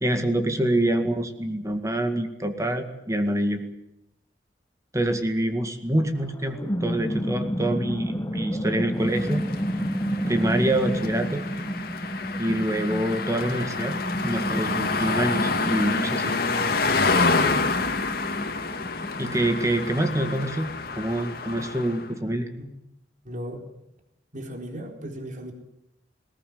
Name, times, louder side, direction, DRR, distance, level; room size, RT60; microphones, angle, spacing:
voice 1, 0.0-3.6 4.9-9.4 10.3-11.4 12.4-14.0 14.2-16.3 19.2-22.5, right 1 dB, 20° right, 7 dB, 2.0 m, -26 dB
sound 1, 6.2-20.5, equal, 20° left, 1.3 m, -31 dB
sound 2, 9.1-22.1, left 3 dB, 55° left, 2.3 m, -28 dB
voice 2, 23.2-23.6 24.3-25.5, equal, 45° right, 4 dB, 3.9 m, -36 dB
20.0 x 18.5 x 9.4 m, 0.83 s
head